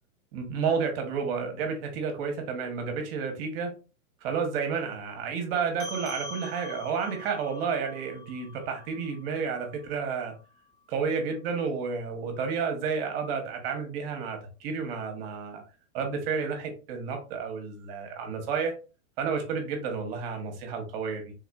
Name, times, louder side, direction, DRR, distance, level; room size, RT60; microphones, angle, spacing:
voice 1, 0.3-3.7 4.2-10.3 10.9-15.6 15.9-18.7 19.2-21.3, right 5 dB, 40° right, 4 dB, 0.9 m, -31 dB
sound 1, 5.8-10.6, left 2 dB, 45° left, 1.1 m, -44 dB
3.5 x 2.3 x 2.2 m, 0.33 s
hypercardioid pair, 145°, 44 cm